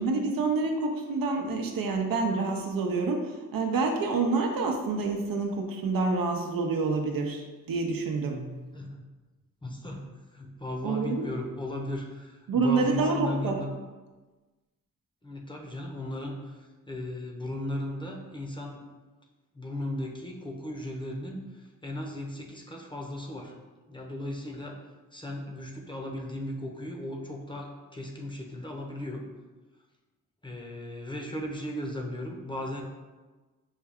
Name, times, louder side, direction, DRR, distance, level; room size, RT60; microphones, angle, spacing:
voice 1, 0.0-8.5 10.8-11.3 12.5-13.6, right 3 dB, 80° right, 3 dB, 0.6 m, -28 dB
voice 2, 9.6-13.7 15.2-18.8 19.5-23.5 23.9-24.8 25.1-29.2 30.4-32.8, left 1 dB, 15° left, 0 dB, 0.7 m, -36 dB
5.4 x 2.2 x 3.5 m, 1.3 s
cardioid pair, 70°, 33 cm